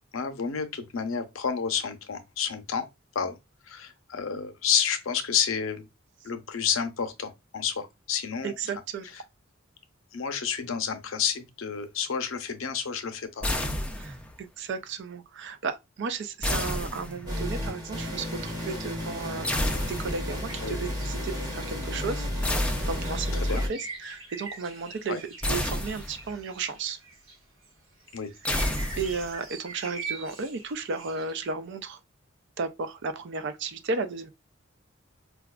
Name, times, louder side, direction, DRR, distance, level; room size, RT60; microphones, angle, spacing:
voice 1, 0.1-2.9 3.1-3.4 3.7-5.9 6.2-8.5 10.1-13.5 20.6-20.8 23.5-23.6 25.1-25.2 28.1-28.3, left 7 dB, 80° left, 0.6 m, -30 dB
voice 2, 8.4-9.1 13.9-27.0 29.0-32.0 32.6-34.3, right 4 dB, 60° right, 0.4 m, -34 dB
sound 1, 13.4-14.4 16.4-17.5 19.4-20.4 22.4-23.4 25.4-26.4 28.4-29.4, left 1 dB, 5° left, 0.4 m, -30 dB
sound 2, 17.3-23.7, left 1 dB, 20° right, 0.9 m, -32 dB
sound 3, 20.5-27.4 27.6-27.7 28.0-31.5, right 4 dB, 90° right, 1.2 m, -43 dB
4.8 x 2.3 x 2.2 m
head